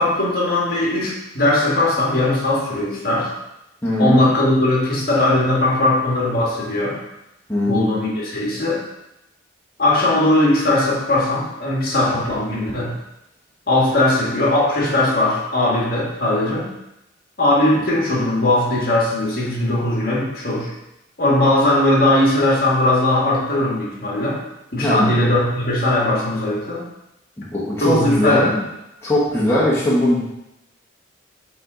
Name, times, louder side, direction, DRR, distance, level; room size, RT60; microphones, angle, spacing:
voice 1, 0.0-3.3 4.0-7.0 7.7-8.8 9.8-12.9 13.7-16.7 17.4-20.7 21.2-24.4 24.7-26.8 27.8-28.6, left 1 dB, 50° left, -5 dB, 1.8 m, -19 dB
voice 2, 3.8-4.3 7.5-7.9 24.8-25.1 27.5-28.6 29.0-30.2, left 1 dB, 15° left, -8 dB, 1.3 m, -19 dB
7.5 x 3.5 x 3.9 m, 0.87 s
head